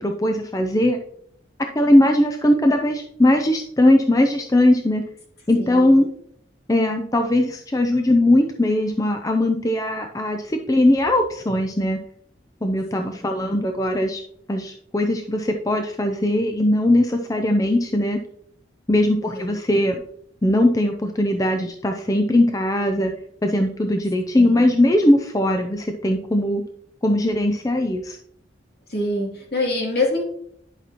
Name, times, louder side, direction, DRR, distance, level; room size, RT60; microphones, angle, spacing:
voice 1, 0.0-1.0 1.8-5.0 5.5-6.1 6.7-12.0 12.6-14.2 14.5-18.2 18.9-20.0 20.4-23.1 23.4-26.6 27.0-28.2, left 1 dB, 20° left, 4 dB, 0.5 m, -19 dB
voice 2, 5.6-5.9 13.0-13.2 19.3-19.5 24.4-24.6 28.9-30.2, left 2 dB, 60° left, -1 dB, 2.7 m, -25 dB
11.0 x 5.9 x 2.9 m, 0.69 s
head